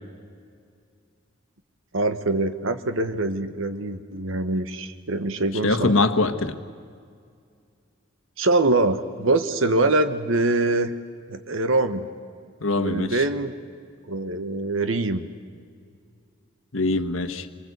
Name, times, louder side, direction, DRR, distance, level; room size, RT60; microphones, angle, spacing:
voice 1, 1.9-5.9 8.4-10.9 11.3-12.1 12.8-13.5 14.1-15.3, right 2 dB, 80° right, 9 dB, 1.2 m, -24 dB
voice 2, 5.6-6.6 12.6-13.2 16.7-17.5, left 2 dB, 80° left, 9 dB, 1.4 m, -23 dB
26.5 x 24.0 x 8.2 m, 2.2 s
head